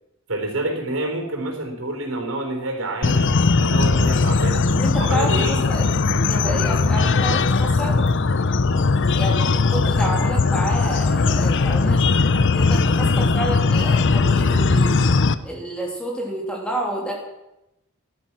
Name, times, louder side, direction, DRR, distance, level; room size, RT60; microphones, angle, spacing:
voice 1, 0.3-4.7 5.0-5.6, right 2 dB, 75° right, 4 dB, 4.2 m, -28 dB
sound 1, 3.0-15.3, left 4 dB, 60° left, 0.7 m, -19 dB
voice 2, 4.8-5.9 6.3-8.0 9.2-12.0 12.5-14.9 15.4-17.1, equal, 5° left, -2 dB, 3.2 m, -29 dB
16.0 x 12.0 x 6.2 m, 0.91 s
head